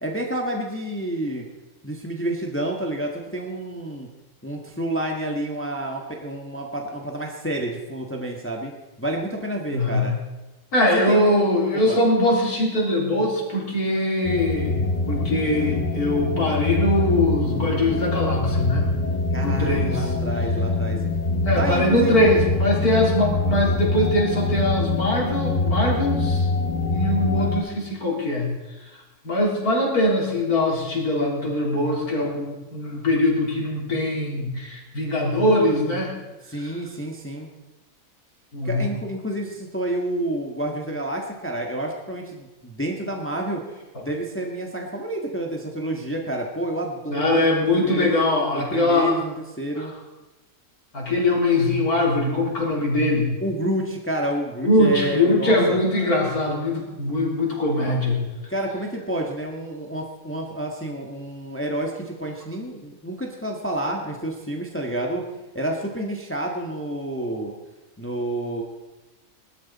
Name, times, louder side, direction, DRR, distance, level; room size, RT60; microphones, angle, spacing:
voice 1, 0.0-1.4 1.8-4.1 4.4-8.7 9.0-10.1 10.9-11.5 11.7-12.0 19.3-21.0 21.6-22.2 36.5-37.5 38.6-43.6 44.0-48.1 48.5-49.9 53.4-55.8 58.5-65.2 65.5-67.5 68.0-68.6, right 1 dB, 10° left, 1 dB, 1.5 m, -29 dB
voice 2, 9.7-10.1 10.7-18.9 19.4-20.1 21.4-26.5 26.9-28.5 29.2-36.1 36.6-36.7 38.5-38.8 47.1-49.2 49.8-49.9 50.9-53.3 54.6-58.2, left 1 dB, 90° left, -3 dB, 4.2 m, -22 dB
sound 1, 14.2-27.6, left 3 dB, 35° left, 1.1 m, -24 dB
20.0 x 12.5 x 4.2 m, 1.1 s
omnidirectional pair, 1.6 m